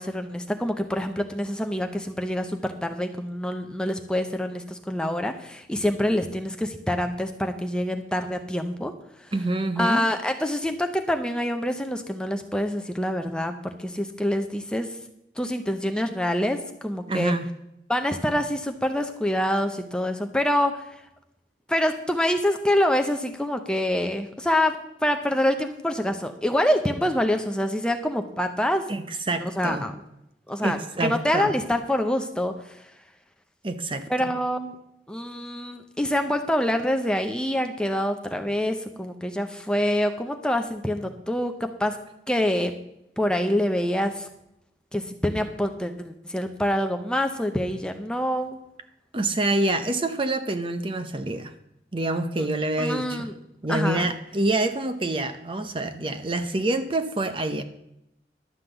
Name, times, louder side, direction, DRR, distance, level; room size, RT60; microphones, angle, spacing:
voice 1, 0.0-8.9 9.8-14.9 15.4-17.3 17.9-20.8 21.7-24.8 25.0-28.8 29.4-29.9 30.5-32.8 34.1-34.8 35.1-42.0 42.3-42.7 43.2-44.3 44.9-48.6 52.4-52.5 52.8-53.3 53.7-54.1, left 1 dB, 5° left, 5 dB, 0.7 m, -26 dB
voice 2, 9.3-10.0 17.1-17.5 28.9-29.8 30.6-31.5 33.6-34.3 49.1-51.5 51.9-53.3 53.6-57.6, right 2 dB, 30° right, 9 dB, 0.7 m, -27 dB
11.5 x 5.8 x 7.9 m, 0.81 s
head